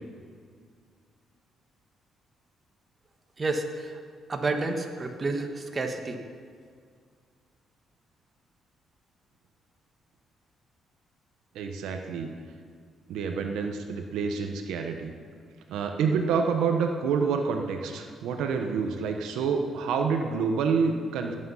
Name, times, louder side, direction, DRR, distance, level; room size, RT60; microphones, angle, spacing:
voice 1, 3.4-4.0 4.3-6.2, right 3 dB, 30° right, 4 dB, 1.6 m, -30 dB
voice 2, 11.5-12.3 13.1-15.1 15.7-21.4, right 5 dB, 85° right, 4 dB, 1.1 m, -28 dB
19.5 x 8.8 x 5.7 m, 2.1 s
cardioid pair, 90°, 0 cm